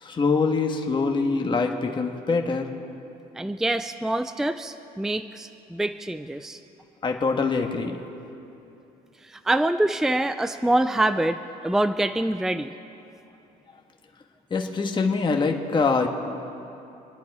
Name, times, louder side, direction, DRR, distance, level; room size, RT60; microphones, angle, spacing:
voice 1, 0.0-2.7 7.0-8.0 14.5-16.1, left 4 dB, 30° left, 3 dB, 1.5 m, -24 dB
voice 2, 3.4-6.6 9.5-11.4 11.6-12.7, right 1 dB, 5° right, 10 dB, 0.4 m, -25 dB
27.0 x 10.5 x 4.8 m, 2.9 s
cardioid pair, 110°, 17 cm